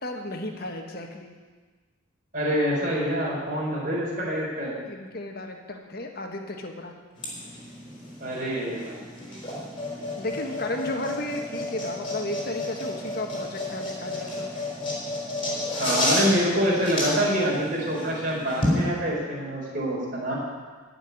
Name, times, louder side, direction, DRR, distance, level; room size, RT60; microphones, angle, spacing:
voice 1, 0.0-1.3 3.8-4.1 4.8-6.9 10.2-14.5, left 2 dB, 45° left, 3 dB, 1.5 m, -34 dB
voice 2, 2.3-4.7 8.2-9.4 15.8-20.3, equal, 40° right, -5 dB, 4.3 m, -26 dB
sound 1, 7.2-18.8, left 1 dB, 25° left, 3.8 m, -31 dB
13.5 x 6.0 x 9.7 m, 1.4 s
head